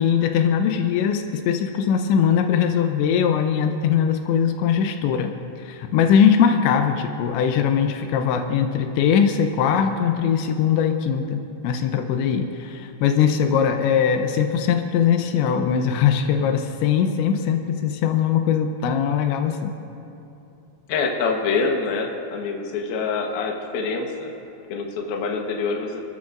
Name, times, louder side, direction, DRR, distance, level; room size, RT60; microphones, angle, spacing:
voice 1, 0.0-5.3 5.6-19.7, left 7 dB, 85° left, 5 dB, 3.1 m, -21 dB
voice 2, 20.9-24.3 24.7-26.1, left 4 dB, 65° left, 1 dB, 2.8 m, -25 dB
30.0 x 13.5 x 2.6 m, 2.8 s
omnidirectional pair, 5.1 m